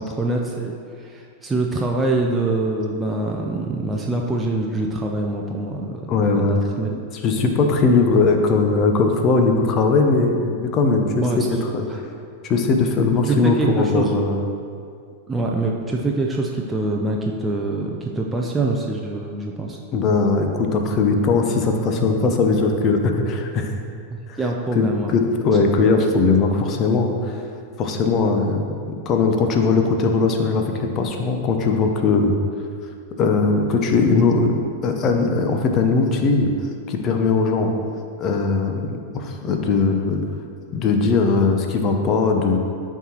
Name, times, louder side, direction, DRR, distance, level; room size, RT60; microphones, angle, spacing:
voice 1, 0.0-6.9 11.2-11.5 11.9-12.0 13.2-14.1 15.3-19.8 24.1-25.2, right 2 dB, 10° right, -1 dB, 0.6 m, -25 dB
voice 2, 6.1-6.6 7.2-11.9 12.4-14.4 19.9-23.7 24.3-24.4 24.7-24.8 25.1-27.4 27.8-28.7 29.1-32.3 33.2-36.5 36.9-37.7 38.2-40.2 40.7-42.6, left 4 dB, 35° left, 4 dB, 0.9 m, -19 dB
12.5 x 4.7 x 3.0 m, 2.3 s
figure-of-eight pair, 90°, 0 cm